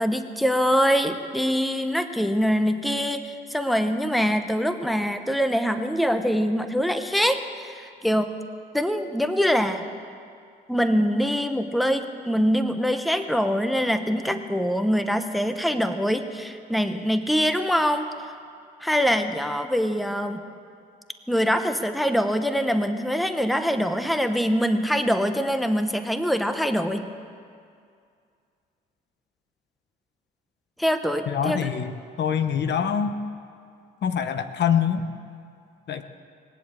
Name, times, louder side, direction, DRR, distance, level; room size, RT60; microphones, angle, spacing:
voice 1, 0.0-8.4 8.7-9.8 10.7-18.1 18.8-20.4 21.3-27.1 30.8-31.7, equal, ahead, 8 dB, 0.9 m, -24 dB
voice 2, 31.3-33.1 34.0-35.1 35.9-36.0, left 8 dB, 60° left, 9 dB, 0.9 m, -25 dB
20.5 x 7.8 x 8.4 m, 2.3 s
cardioid pair, 90°, 20 cm